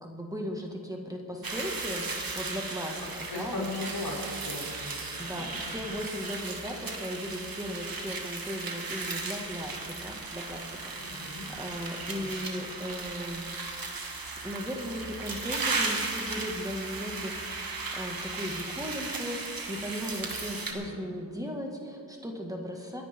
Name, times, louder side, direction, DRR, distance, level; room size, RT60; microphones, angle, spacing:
voice 1, 0.0-3.7 5.2-11.3 11.6-13.5 14.4-23.0, equal, 10° right, 1 dB, 1.9 m, -37 dB
sound 1, 1.4-20.7, right 3 dB, 70° right, 1.8 m, -36 dB
voice 2, 3.3-5.8 11.0-11.5 12.1-12.4 20.7-21.1, left 2 dB, 80° left, -3 dB, 3.6 m, -38 dB
28.0 x 10.0 x 3.7 m, 2.3 s
wide cardioid pair, 70°, 37 cm